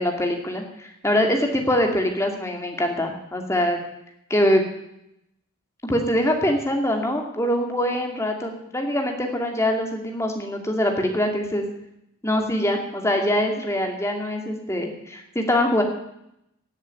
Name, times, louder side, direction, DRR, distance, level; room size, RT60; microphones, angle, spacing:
voice 1, 0.0-3.8 4.3-4.6 5.8-11.6 12.2-15.8, left 1 dB, 10° left, 2 dB, 2.3 m, -23 dB
16.5 x 7.5 x 9.5 m, 0.80 s
head